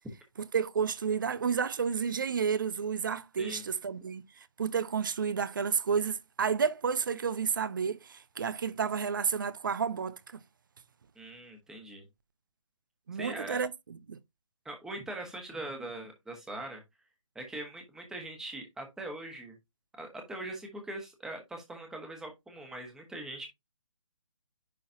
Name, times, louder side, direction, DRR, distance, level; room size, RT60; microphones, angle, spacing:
voice 1, 0.5-4.2 4.6-10.4 13.1-14.2, right 6 dB, 40° right, 0.6 m, -31 dB
voice 2, 11.1-12.1 13.1-13.6 14.6-16.8 17.3-19.6 20.0-23.5, right 1 dB, 5° right, 1.3 m, -41 dB
10.5 x 3.9 x 2.7 m
figure-of-eight pair, 145°, 16 cm